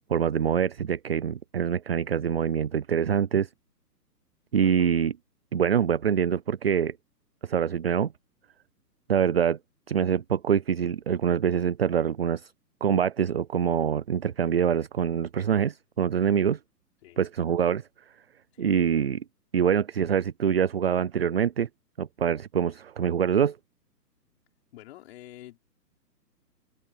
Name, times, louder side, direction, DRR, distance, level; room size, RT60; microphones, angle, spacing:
voice 1, 0.1-3.5 4.5-5.2 5.5-7.0 7.4-8.1 9.1-9.6 9.9-12.5 12.8-16.6 17.2-17.8 18.6-19.2 19.5-21.7 22.0-23.6, right 8 dB, 40° right, 0.4 m, -25 dB
voice 2, 24.7-25.6, left 14 dB, 40° left, 5.1 m, -48 dB
open air
hypercardioid pair, 160°, 49 cm